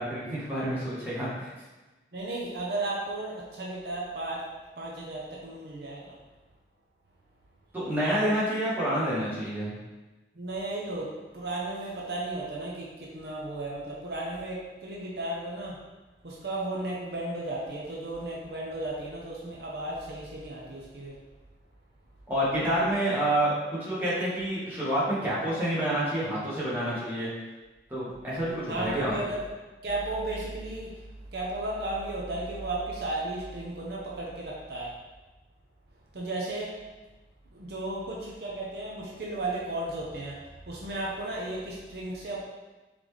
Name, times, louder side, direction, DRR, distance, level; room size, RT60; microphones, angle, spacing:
voice 1, 0.0-1.5 7.7-9.8 22.3-23.5 23.8-27.3 27.9-29.2, right 1 dB, 10° right, -9 dB, 1.2 m, -28 dB
voice 2, 2.1-4.4 4.8-6.1 10.4-15.8 16.2-21.2 28.7-29.4 29.8-30.9 31.3-34.9 36.1-36.7 37.5-40.4 40.7-42.4, right 2 dB, 65° right, -4 dB, 0.7 m, -34 dB
3.8 x 3.3 x 3.2 m, 1.2 s
head